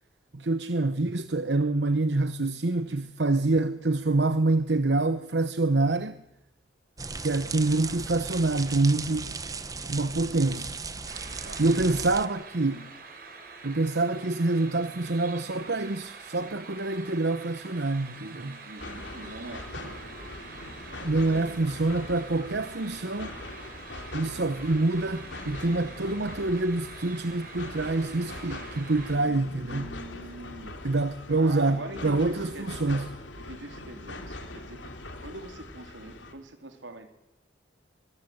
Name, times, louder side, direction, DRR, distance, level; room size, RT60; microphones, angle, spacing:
voice 1, 0.3-6.2 7.2-9.4 9.8-10.7 11.6-12.9 13.6-18.6 21.0-23.4 24.1-29.9 30.8-33.1, right 2 dB, 70° right, 0.9 m, -26 dB
sound 1, 7.0-12.3, right 4 dB, 20° right, 1.0 m, -37 dB
sound 2, 11.0-29.2, right 4 dB, 50° right, 4.4 m, -46 dB
voice 2, 18.6-20.5 20.9-21.7 29.1-30.9 31.4-33.1 33.4-34.9 35.2-37.1, right 2 dB, 85° right, 3.4 m, -43 dB
sound 3, 18.8-36.3, left 2 dB, 85° left, 3.4 m, -42 dB
24.0 x 22.5 x 7.9 m
head